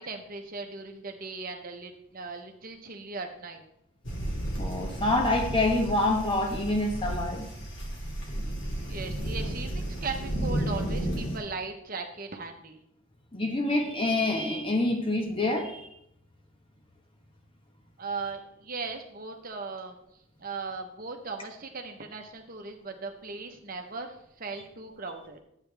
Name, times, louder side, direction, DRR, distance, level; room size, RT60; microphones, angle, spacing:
voice 1, 0.0-3.6 8.9-12.8 18.0-20.0 20.4-25.4, right 4 dB, 40° right, 4 dB, 0.9 m, -38 dB
sound 1, 4.0-11.4, right 1 dB, 65° left, 2.4 m, -33 dB
voice 2, 4.6-7.5 13.3-15.9, left 2 dB, 25° left, 3 dB, 1.1 m, -26 dB
11.0 x 8.3 x 3.4 m, 0.78 s
head